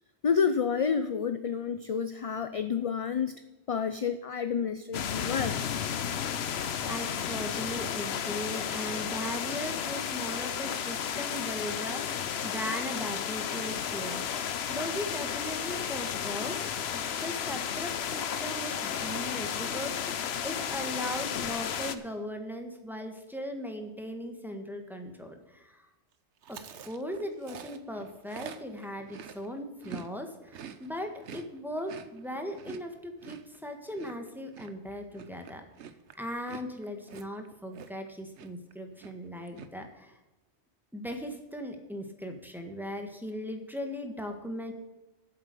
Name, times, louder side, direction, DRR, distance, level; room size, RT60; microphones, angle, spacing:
voice 1, 0.2-3.3 3.7-5.7, left 6 dB, 45° left, 10 dB, 0.5 m, -29 dB
sound 1, 4.9-22.0, left 8 dB, 70° left, 1.0 m, -33 dB
voice 2, 6.9-14.3 14.7-25.8 26.5-35.6 36.1-40.2 40.9-44.7, equal, ahead, 3 dB, 1.5 m, -38 dB
Chewing mastication, 26.4-30.1 30.4-38.1 38.4-38.7 39.0-39.7, right 7 dB, 80° right, 1.1 m, -47 dB
8.7 x 7.6 x 8.2 m, 1.1 s
omnidirectional pair, 1.2 m